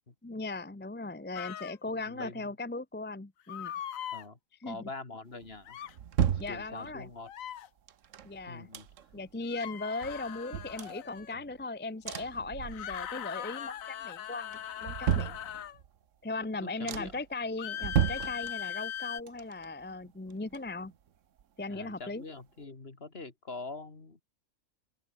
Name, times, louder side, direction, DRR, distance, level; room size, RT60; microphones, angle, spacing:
voice 1, 0.2-3.7 4.6-4.9 6.4-7.1 8.2-8.7 9.1-15.4 16.2-20.9 21.6-22.2, left 3 dB, 10° left, 0.5 m, -38 dB
sound 1, 1.3-1.8 3.5-4.2 5.6-5.9 7.2-7.7 9.5-11.3 12.7-15.8 17.6-19.2, left 10 dB, 85° left, 1.3 m, -40 dB
voice 2, 2.0-2.5 4.1-5.8 6.3-7.3 8.5-8.9 16.6-17.2 21.7-24.2, left 3 dB, 45° left, 2.8 m, -44 dB
sound 2, 5.4-7.2 7.9-9.3 9.7-9.8 10.0-11.6 12.0-13.2 13.5-14.0 14.5-16.0 16.4-16.5 16.9-17.3 17.8-19.0 19.3-21.1 21.4-21.5, right 9 dB, 70° right, 1.3 m, -34 dB
open air
omnidirectional pair, 1.4 m